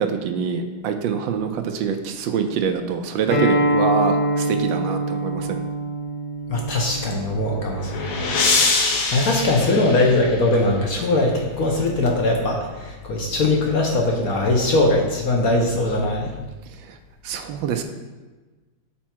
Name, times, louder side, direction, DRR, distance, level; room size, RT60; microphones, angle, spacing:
voice 1, 0.0-5.6 16.8-16.9 17.2-17.8, right 6 dB, 80° right, 6 dB, 1.3 m, -25 dB
Acoustic guitar, 3.3-8.5, right 1 dB, 30° left, 0.6 m, -24 dB
voice 2, 6.5-8.3 9.1-16.3, left 2 dB, 55° left, 0 dB, 1.2 m, -21 dB
sound 1, 7.3-10.7, left 3 dB, 90° left, 1.7 m, -24 dB
7.1 x 4.4 x 4.4 m, 1.2 s
omnidirectional pair, 2.1 m